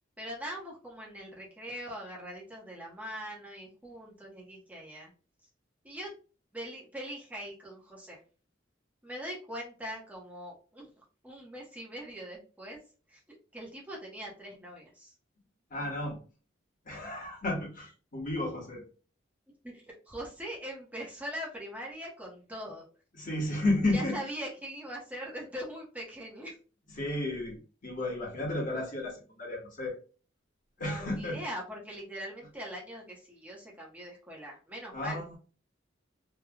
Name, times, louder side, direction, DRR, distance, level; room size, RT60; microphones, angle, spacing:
voice 1, 0.2-5.1 5.8-6.1 6.5-8.2 9.0-10.9 11.2-12.8 13.1-13.2 13.5-15.1 19.6-22.9 23.9-26.6 30.8-35.2, equal, 10° right, -3 dB, 0.8 m, -41 dB
voice 2, 15.7-16.2 16.8-18.8 23.1-24.2 27.0-30.0 30.8-31.4 34.9-35.4, left 1 dB, 45° left, -1 dB, 1.3 m, -32 dB
3.1 x 2.3 x 2.2 m, 0.37 s
head